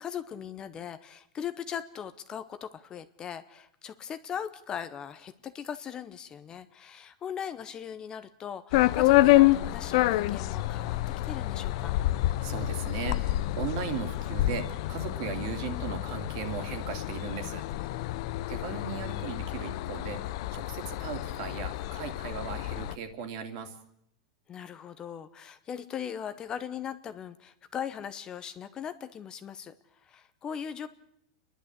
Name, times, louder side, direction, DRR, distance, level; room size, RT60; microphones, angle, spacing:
voice 1, 0.0-11.9 18.0-18.4 24.5-30.9, left 8 dB, 20° left, 12 dB, 0.8 m, -39 dB
sound 1, 8.7-22.9, left 16 dB, 55° left, 0.7 m, -28 dB
voice 2, 12.4-17.9 18.5-23.8, right 7 dB, 50° right, 7 dB, 2.6 m, -37 dB
29.0 x 11.0 x 8.1 m, 0.75 s
supercardioid pair, 155°, 4 cm